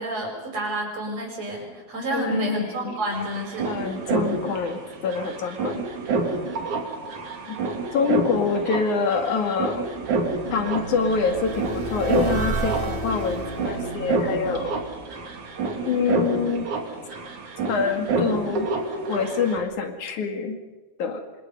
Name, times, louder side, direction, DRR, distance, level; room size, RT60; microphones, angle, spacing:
voice 1, 0.0-3.7, right 1 dB, 60° right, 0 dB, 6.9 m, -29 dB
voice 2, 2.1-3.0 3.7-5.8 7.5-7.6 7.9-9.9 10.5-14.8 15.9-16.7 17.7-18.7 19.1-20.6 21.0-21.2, left 5 dB, 85° left, 5 dB, 3.6 m, -26 dB
sound 1, 2.6-2.7 2.8-19.6, right 3 dB, 85° right, 3.9 m, -29 dB
sound 2, 9.1-16.1, right 3 dB, 25° right, 1.3 m, -33 dB
27.5 x 25.5 x 5.5 m, 1.3 s
omnidirectional pair, 3.3 m